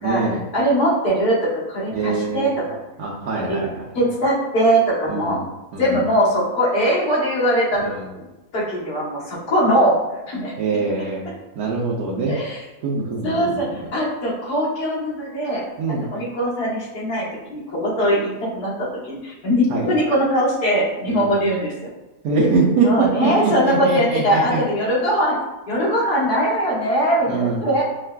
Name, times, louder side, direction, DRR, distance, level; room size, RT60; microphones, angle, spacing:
voice 1, 0.0-0.4 1.9-2.5 3.0-3.9 5.1-5.4 5.7-6.0 7.8-8.1 10.6-11.2 11.6-12.4 12.8-13.9 15.8-16.1 19.7-19.9 21.1-21.3 22.2-24.6 27.3-27.8, right 4 dB, 80° right, -4 dB, 1.2 m, -23 dB
voice 2, 0.5-2.5 3.5-5.4 5.8-8.3 8.5-10.0 10.3-10.5 12.3-12.6 13.2-17.2 17.5-18.7 19.1-21.9 22.8-25.4 25.7-27.8, equal, 80° left, -8 dB, 1.9 m, -21 dB
6.3 x 2.4 x 2.2 m, 1.1 s
omnidirectional pair, 1.6 m